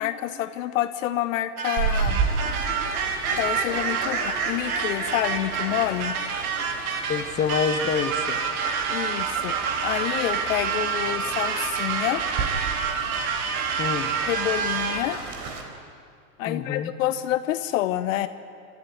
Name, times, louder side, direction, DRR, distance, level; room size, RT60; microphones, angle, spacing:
voice 1, 0.0-2.2 3.3-6.1 8.9-12.2 14.3-15.2 16.4-18.3, left 13 dB, 60° left, 11 dB, 1.1 m, -28 dB
sound 1, 1.6-15.2, right 6 dB, 70° right, 2.8 m, -28 dB
Fowl, 1.8-15.6, right 4 dB, 50° right, 4.0 m, -32 dB
voice 2, 7.1-8.4 13.8-14.1 16.5-16.9, left 6 dB, 20° left, 7 dB, 1.2 m, -26 dB
26.0 x 14.0 x 9.9 m, 2.3 s
hypercardioid pair, 115°, 44 cm